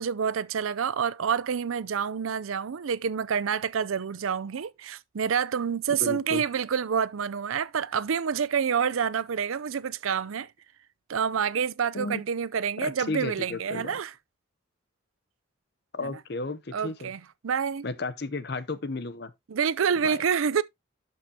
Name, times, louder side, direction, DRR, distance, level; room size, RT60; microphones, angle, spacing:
voice 1, 0.0-10.5 11.1-14.1 16.0-16.1 16.7-17.8 19.5-20.6, right 7 dB, 90° right, 0.5 m, -28 dB
voice 2, 6.0-6.4 11.9-12.2 12.8-14.0 15.9-17.1 17.8-19.3 20.0-20.2, left 3 dB, 55° left, 0.8 m, -33 dB
11.5 x 5.6 x 2.8 m
head